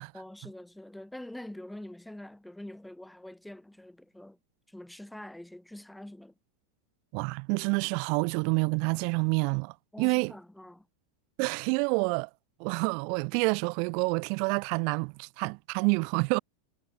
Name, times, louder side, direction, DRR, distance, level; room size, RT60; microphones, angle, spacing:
voice 1, 0.1-4.4 4.7-6.3 9.9-10.9, left 1 dB, 5° left, 3.1 m, -45 dB
voice 2, 7.1-10.3 11.4-12.3 12.6-16.4, right 39 dB, 55° right, 2.5 m, -28 dB
hypercardioid pair, 110°, 0 cm